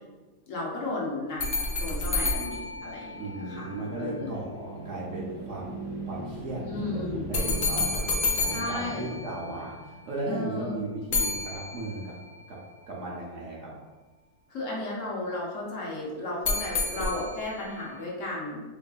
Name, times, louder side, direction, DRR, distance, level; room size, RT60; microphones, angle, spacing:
voice 1, 0.5-3.1 3.4-3.7 4.0-4.4 6.6-7.3 8.5-9.2 10.2-10.8 14.5-18.6, left 2 dB, 60° left, -4 dB, 1.0 m, -34 dB
sound 1, 1.4-3.8 7.3-9.8 11.1-12.3 16.4-17.7, left 3 dB, 90° left, 0.4 m, -30 dB
sound 2, 2.3-10.8, right 2 dB, 90° right, 1.5 m, -41 dB
voice 2, 3.2-8.1 8.3-12.1 12.5-12.6 12.9-13.7, right 2 dB, 65° right, -5 dB, 0.8 m, -36 dB
4.4 x 2.6 x 2.3 m, 1.2 s
omnidirectional pair, 1.7 m